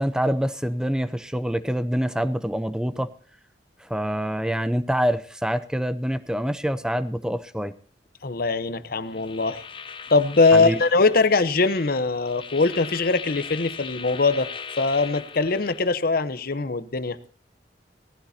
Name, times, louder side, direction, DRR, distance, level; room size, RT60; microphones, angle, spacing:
voice 1, 0.0-3.1 3.8-7.7 10.5-10.8, equal, 5° right, 0.6 m, -26 dB
voice 2, 8.2-9.6 10.1-17.2, left 3 dB, 55° left, 0.9 m, -22 dB
sound 1, 9.1-15.9, left 6 dB, 30° left, 0.8 m, -39 dB
18.0 x 16.0 x 2.8 m
head